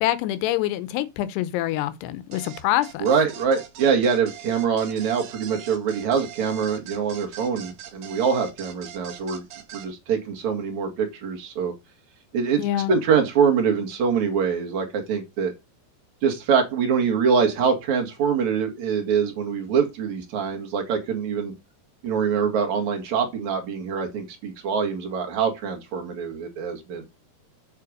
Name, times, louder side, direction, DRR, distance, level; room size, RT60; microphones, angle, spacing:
voice 1, 0.0-3.1 12.6-12.9, left 14 dB, 80° left, 2.9 m, -25 dB
sound 1, 2.3-9.9, right 10 dB, 80° right, 3.6 m, -42 dB
voice 2, 3.0-9.5 9.7-11.7 12.3-15.5 16.2-21.5 22.0-27.0, right 6 dB, 50° right, 2.9 m, -24 dB
8.6 x 4.5 x 6.4 m
omnidirectional pair, 4.9 m